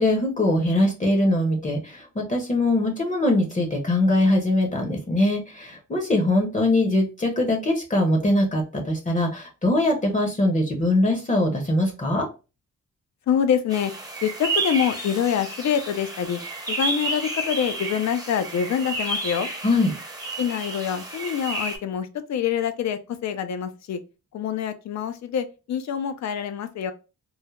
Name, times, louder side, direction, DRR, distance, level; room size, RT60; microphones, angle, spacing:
voice 1, 0.0-12.3 19.6-19.9, left 1 dB, 25° left, 0.7 m, -22 dB
voice 2, 13.3-13.9 14.2-16.4 16.7-19.5 20.4-24.0 24.3-26.9, left 8 dB, 65° left, 0.5 m, -25 dB
sound 1, 13.7-21.8, right 2 dB, 10° right, 0.7 m, -31 dB
3.1 x 2.0 x 2.3 m
cardioid pair, 80°, 30 cm